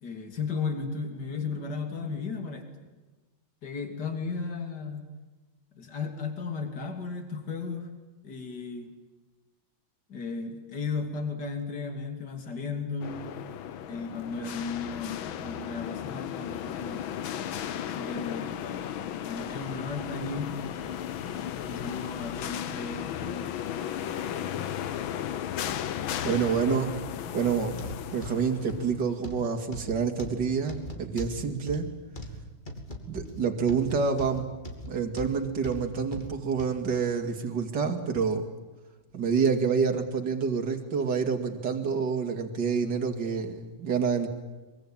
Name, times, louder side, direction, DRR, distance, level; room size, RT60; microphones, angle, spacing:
voice 1, 0.0-2.7 3.6-5.1 5.8-7.9 8.2-8.9 10.1-13.3 13.9-17.1 17.9-18.6 19.3-20.5 21.3-23.6, left 4 dB, 55° left, 6 dB, 3.5 m, -35 dB
sound 1, 13.0-29.1, left 9 dB, 80° left, 1.8 m, -35 dB
voice 2, 26.2-26.9 27.3-27.8 28.1-31.9 33.1-34.5 34.9-38.5 39.1-44.3, right 5 dB, 60° right, 4 dB, 3.1 m, -27 dB
sound 2, 27.7-36.8 37.3-37.5 38.1-38.2, left 1 dB, 25° left, 3.0 m, -41 dB
24.0 x 23.5 x 8.9 m, 1.2 s
omnidirectional pair, 2.2 m